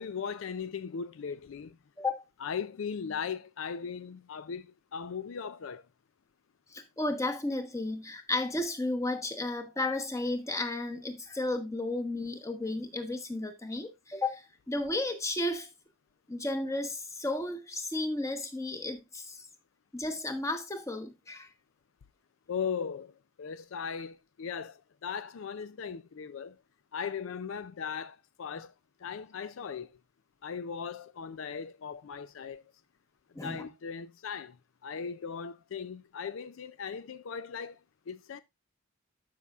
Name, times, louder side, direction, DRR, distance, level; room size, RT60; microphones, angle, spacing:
voice 1, 0.0-1.8 2.4-5.8 22.5-23.1 23.4-26.6 26.9-28.7 29.0-29.9 30.4-32.6 33.4-34.5 34.8-37.8 38.1-38.4, left 6 dB, 75° left, 0.4 m, -38 dB
voice 2, 6.7-15.7 16.3-19.5 19.9-21.5 33.3-33.7, left 2 dB, 15° left, 1.1 m, -33 dB
12.5 x 5.6 x 2.4 m
head